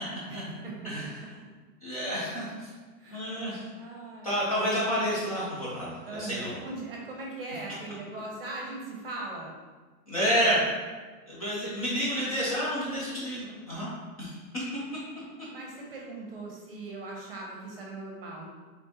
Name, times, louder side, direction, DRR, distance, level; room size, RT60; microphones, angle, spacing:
voice 1, 0.3-0.7 3.0-3.3 3.7-4.3 6.1-9.5 15.5-18.5, right 2 dB, 40° right, -1 dB, 0.8 m, -39 dB
voice 2, 1.8-2.7 3.1-3.6 4.2-6.6 10.1-10.6 11.3-13.9 14.2-14.6, equal, 25° left, -8 dB, 0.6 m, -29 dB
4.8 x 3.5 x 2.9 m, 1.3 s
hypercardioid pair, 175°, 46 cm